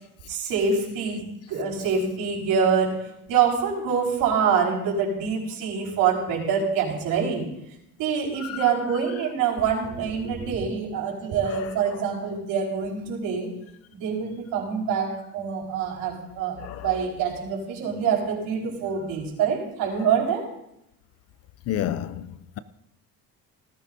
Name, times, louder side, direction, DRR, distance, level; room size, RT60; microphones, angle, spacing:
voice 1, 0.3-1.2 1.5-3.0 3.3-7.5 8.0-13.5 13.9-20.5, right 6 dB, 70° right, 4.8 m, -25 dB
voice 2, 8.4-8.7 11.4-12.0 16.6-17.0 21.7-22.6, left 11 dB, 45° left, 0.5 m, -32 dB
19.0 x 14.5 x 2.7 m
cardioid pair, 175°, 35 cm